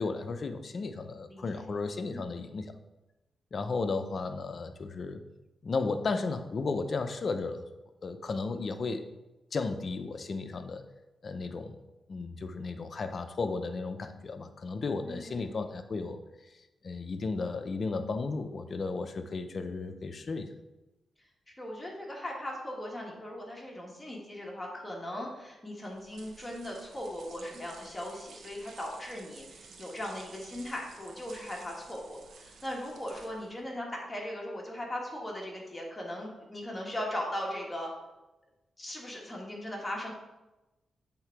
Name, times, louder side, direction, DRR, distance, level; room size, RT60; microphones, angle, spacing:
voice 1, 0.0-2.7 3.5-5.2 5.6-7.7 8.0-9.0 9.5-10.8 11.2-11.8 12.1-16.2 16.8-20.5, left 4 dB, 45° left, 8 dB, 0.5 m, -34 dB
voice 2, 1.3-1.6 2.1-2.3 15.1-15.6 21.6-37.9 38.8-40.1, left 1 dB, 15° left, -2 dB, 1.6 m, -38 dB
sound 1, 25.8-33.6, right 4 dB, 80° right, 0.8 m, -53 dB
7.9 x 3.6 x 4.5 m, 1.0 s
cardioid pair, 105°, 0 cm